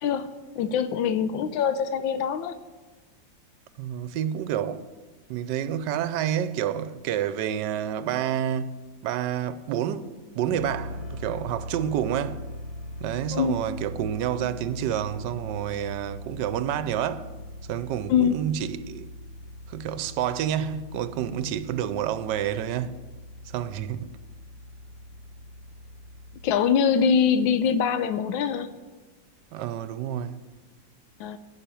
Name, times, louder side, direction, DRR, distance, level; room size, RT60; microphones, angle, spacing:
voice 1, 0.0-2.5 13.3-13.6 18.1-18.4 26.4-28.7 31.2-31.4, left 7 dB, 85° left, 1.4 m, -24 dB
voice 2, 3.8-4.8 5.3-8.7 9.0-12.4 13.0-17.3 17.7-19.1 19.7-22.9 23.5-24.1 29.5-30.4, right 10 dB, 70° right, 1.2 m, -29 dB
sound 1, 10.4-26.5, left 1 dB, 65° left, 3.6 m, -41 dB
11.5 x 6.9 x 9.1 m
omnidirectional pair, 2.1 m